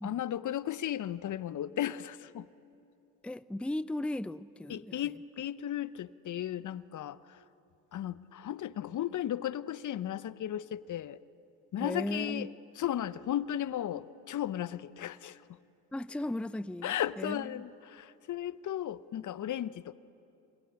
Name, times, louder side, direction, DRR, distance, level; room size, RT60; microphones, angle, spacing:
voice 1, 0.0-2.4 4.7-7.2 7.9-11.2 11.7-12.5 12.8-15.4 16.8-19.9, left 11 dB, 50° left, 0.9 m, -35 dB
voice 2, 3.2-5.1 11.8-12.5 15.9-17.6, left 1 dB, 5° left, 0.7 m, -36 dB
27.0 x 26.0 x 8.5 m
hypercardioid pair, 60°, 39 cm